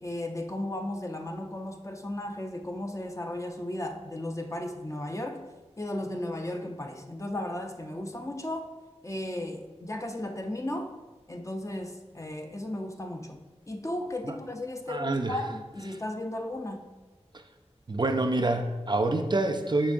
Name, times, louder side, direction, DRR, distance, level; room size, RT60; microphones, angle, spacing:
voice 1, 0.0-5.4 5.8-8.7 9.0-10.9 11.3-16.9, left 1 dB, 25° left, 3 dB, 0.6 m, -35 dB
voice 2, 14.9-15.3 17.9-19.9, right 2 dB, 40° right, 6 dB, 0.4 m, -27 dB
6.9 x 5.3 x 2.6 m, 1.3 s
wide cardioid pair, 60°, 11 cm